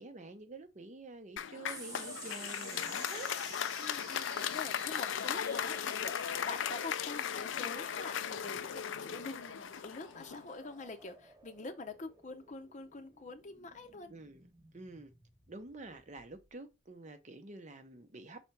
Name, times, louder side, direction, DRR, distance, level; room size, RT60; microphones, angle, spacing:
voice 1, 0.0-3.3 14.1-14.5 14.7-15.1 15.5-18.5, right 2 dB, 40° right, 0.7 m, -48 dB
Applause, 1.4-10.7, left 8 dB, 75° left, 0.4 m, -37 dB
White Noise (High to Low), 1.7-16.5, right 2 dB, 20° right, 1.2 m, -52 dB
voice 2, 3.8-14.1, left 3 dB, 40° left, 0.7 m, -45 dB
5.8 x 4.0 x 4.6 m
head